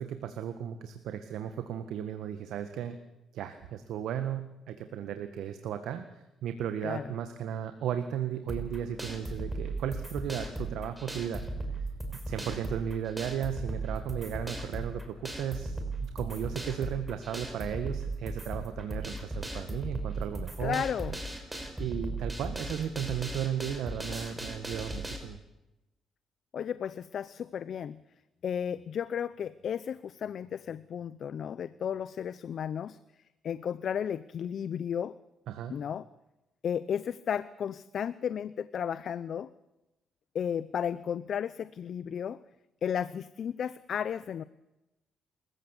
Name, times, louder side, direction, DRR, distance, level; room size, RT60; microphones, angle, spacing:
voice 1, 0.0-3.0 3.3-11.4 12.3-20.8 21.8-25.4 35.5-35.7, right 9 dB, 80° right, 8 dB, 1.7 m, -35 dB
sound 1, 8.5-25.2, right 2 dB, 10° right, 5.2 m, -37 dB
voice 2, 20.6-21.1 26.5-28.0 28.4-33.0 33.4-35.1 35.7-36.1 36.6-39.5 40.3-42.4 42.8-44.4, left 8 dB, 60° left, 16 dB, 0.7 m, -33 dB
27.0 x 15.0 x 8.3 m, 0.96 s
cardioid pair, 90°, 0 cm